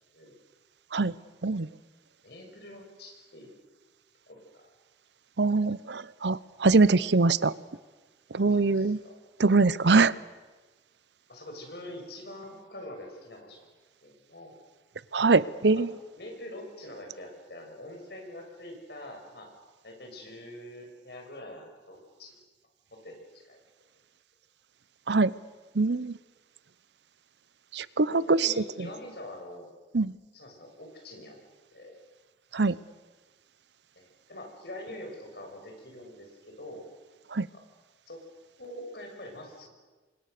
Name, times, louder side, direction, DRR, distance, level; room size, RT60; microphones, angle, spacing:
voice 1, 2.2-3.6 4.3-4.7 8.5-9.2 11.3-13.7 14.0-14.5 15.7-15.8 16.2-19.5 19.8-22.4 22.9-23.2 23.4-23.6 28.1-29.7 30.3-31.4 31.7-31.9 33.9-36.3 36.6-36.8 37.5-37.6 38.1-38.2 38.6-39.7, left 1 dB, 65° left, 2 dB, 6.5 m, -44 dB
voice 2, 5.4-7.5 8.3-9.0 9.4-10.1 15.1-15.9 25.1-25.3 25.8-26.1 27.7-28.5 29.9-30.1 32.5-32.7 37.3-37.5, right 3 dB, 80° right, 18 dB, 0.8 m, -23 dB
28.5 x 25.0 x 6.7 m, 1.3 s
head